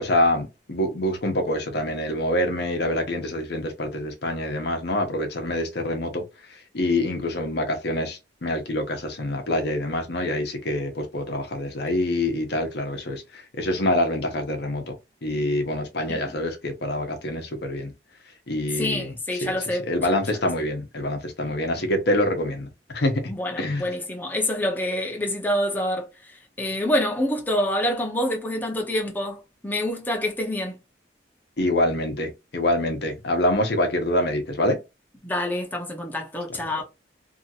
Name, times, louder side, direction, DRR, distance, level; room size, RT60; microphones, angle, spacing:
voice 1, 0.0-6.2 6.5-15.0 15.2-17.9 18.5-19.1 19.4-23.2 23.6-23.9 31.6-34.8, left 1 dB, 65° left, 0.8 m, -26 dB
voice 2, 18.8-20.2 23.3-30.8 35.2-36.8, left 1 dB, 10° left, 0.7 m, -27 dB
2.8 x 2.5 x 2.8 m
head